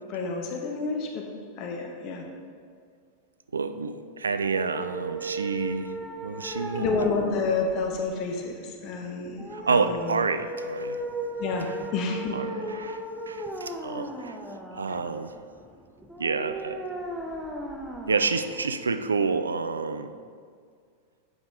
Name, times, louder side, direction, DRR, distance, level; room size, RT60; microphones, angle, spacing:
voice 1, 0.1-2.3 6.7-9.4 9.7-10.1 11.4-12.4, left 4 dB, 40° left, 3 dB, 0.9 m, -29 dB
voice 2, 3.5-5.9 6.2-6.9 9.5-11.0 12.3-14.4 14.7-15.3 16.2-16.8 18.1-20.1, right 4 dB, 75° right, 10 dB, 0.3 m, -28 dB
sound 1, 4.3-19.2, right 1 dB, 5° right, 0.7 m, -37 dB
8.1 x 5.2 x 3.7 m, 2.1 s
figure-of-eight pair, 90°, 0 cm